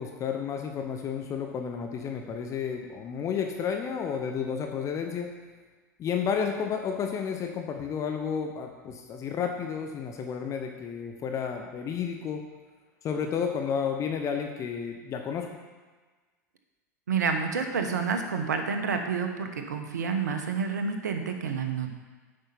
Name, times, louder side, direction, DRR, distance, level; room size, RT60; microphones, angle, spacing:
voice 1, 0.0-5.3 6.0-12.4 13.0-15.6, left 7 dB, 35° left, 3 dB, 0.9 m, -31 dB
voice 2, 17.1-22.0, right 5 dB, 80° right, 5 dB, 1.1 m, -29 dB
8.4 x 5.5 x 5.7 m, 1.3 s
hypercardioid pair, 90°, 9 cm